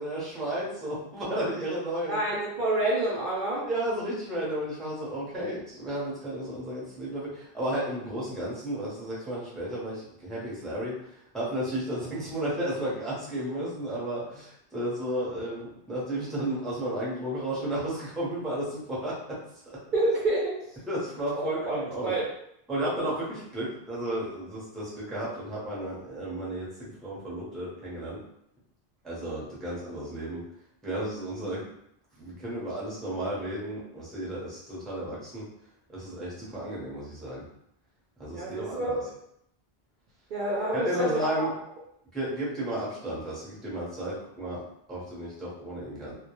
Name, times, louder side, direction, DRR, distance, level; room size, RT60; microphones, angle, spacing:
voice 1, 0.0-2.2 3.7-10.9 11.3-19.4 19.7-19.8 20.9-22.1 22.7-28.2 29.0-30.4 30.8-31.6 32.2-35.4 35.9-37.4 38.2-39.0 40.7-41.5 42.1-44.6 44.9-46.1, right 1 dB, ahead, -7 dB, 0.7 m, -33 dB
voice 2, 2.1-3.7 19.9-20.5 21.4-22.2 38.3-39.0 40.3-41.5, right 2 dB, 55° right, -6 dB, 0.6 m, -28 dB
2.3 x 2.2 x 2.9 m, 0.75 s
omnidirectional pair, 1.1 m